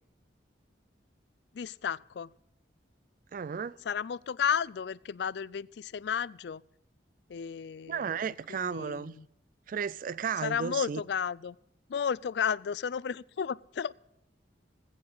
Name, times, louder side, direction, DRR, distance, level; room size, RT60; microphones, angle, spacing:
voice 1, 1.5-2.3 3.9-6.6 7.3-8.2 8.5-9.3 10.4-11.6 11.9-13.9, left 7 dB, 65° left, 0.4 m, -33 dB
voice 2, 3.3-3.8 7.9-9.1 9.7-11.0, right 7 dB, 50° right, 0.3 m, -34 dB
20.5 x 8.7 x 4.0 m
head